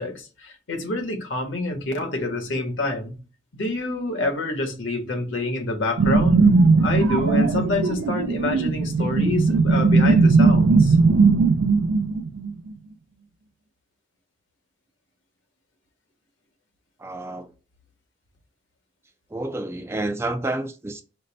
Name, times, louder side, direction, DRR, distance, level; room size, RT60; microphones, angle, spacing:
voice 1, 0.0-3.2 3.5-6.5 6.8-11.0, left 2 dB, 80° left, 1.2 m, -27 dB
sound 1, 6.0-12.7, right 4 dB, 85° right, 0.4 m, -18 dB
voice 2, 17.0-17.5 19.3-21.0, right 2 dB, 15° right, 0.3 m, -29 dB
5.2 x 2.2 x 3.9 m
head